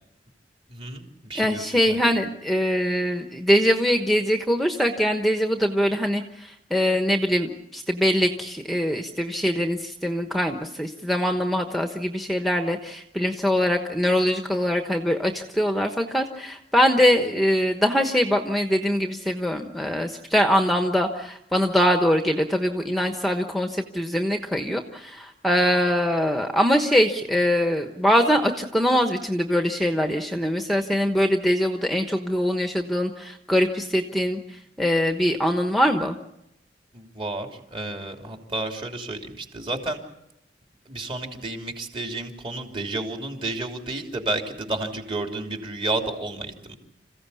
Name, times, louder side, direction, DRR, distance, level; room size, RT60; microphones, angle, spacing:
voice 1, 0.7-2.0 36.9-40.0 40.9-46.8, right 2 dB, 30° right, 3 dB, 3.2 m, -31 dB
voice 2, 1.3-36.2, equal, ahead, 5 dB, 1.1 m, -23 dB
27.5 x 15.5 x 8.4 m, 0.84 s
head